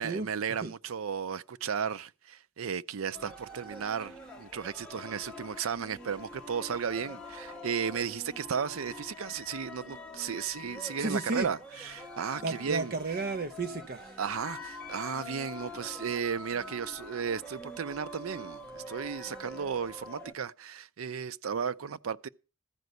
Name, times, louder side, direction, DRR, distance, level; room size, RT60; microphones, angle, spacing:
voice 1, 0.0-12.9 14.2-22.3, right 7 dB, 85° right, 0.5 m, -34 dB
sound 1, 3.1-20.3, left 2 dB, 5° left, 1.4 m, -45 dB
voice 2, 11.0-11.5 12.4-14.2, right 3 dB, 50° right, 0.7 m, -33 dB
14.0 x 5.2 x 7.9 m
head